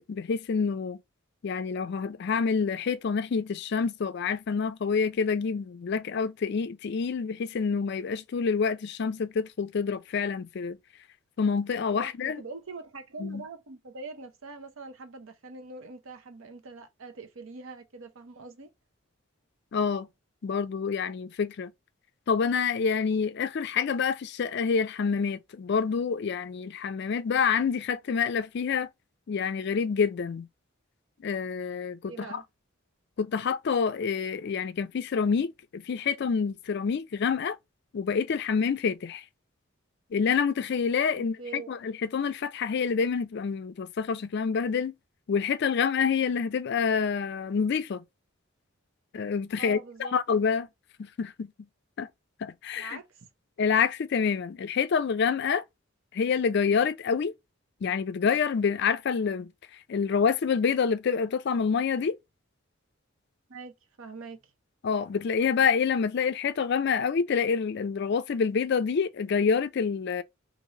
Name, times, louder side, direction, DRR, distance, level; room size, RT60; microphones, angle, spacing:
voice 1, 0.1-1.0 1.4-10.8 11.4-12.4 13.2-13.4 19.7-20.1 20.4-21.7 22.3-28.9 29.3-30.5 31.2-32.4 33.2-37.6 37.9-39.2 40.1-44.9 45.3-48.0 49.1-50.7 51.2-51.5 52.0-52.1 52.4-53.0 53.6-55.6 56.1-57.3 57.8-59.5 59.9-62.2 64.8-70.2, left 6 dB, 55° left, 0.4 m, -27 dB
voice 2, 11.7-18.7 32.1-32.4 41.1-41.7 49.6-50.2 52.8-53.3 63.5-64.5, right 3 dB, 75° right, 0.7 m, -43 dB
3.1 x 2.6 x 2.7 m
head